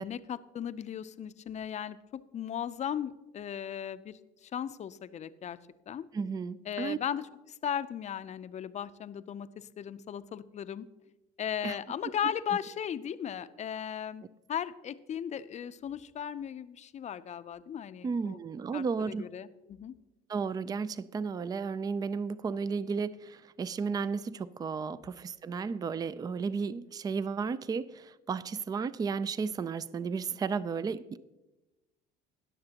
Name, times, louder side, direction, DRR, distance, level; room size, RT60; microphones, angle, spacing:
voice 1, 0.0-5.6 5.9-6.1 6.7-10.9 11.4-14.2 14.5-18.4 18.7-20.0, left 9 dB, 35° left, 0.5 m, -37 dB
voice 2, 6.1-7.0 11.6-11.8 18.0-19.3 20.3-31.2, right 5 dB, 20° right, 0.3 m, -33 dB
19.5 x 6.7 x 2.9 m
supercardioid pair, 90°, 20 cm